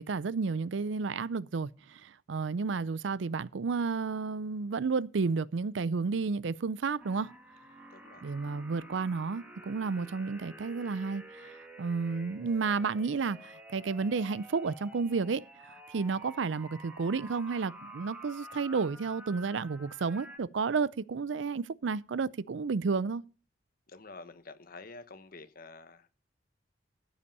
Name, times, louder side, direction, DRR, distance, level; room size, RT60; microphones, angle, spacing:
voice 1, 0.0-7.3 8.2-11.5 11.8-23.2, right 4 dB, 75° right, 0.5 m, -32 dB
sound 1, 7.0-20.4, right 1 dB, 10° right, 1.9 m, -50 dB
voice 2, 7.9-8.3 23.9-26.1, left 3 dB, 50° left, 1.2 m, -49 dB
14.0 x 5.7 x 5.4 m
head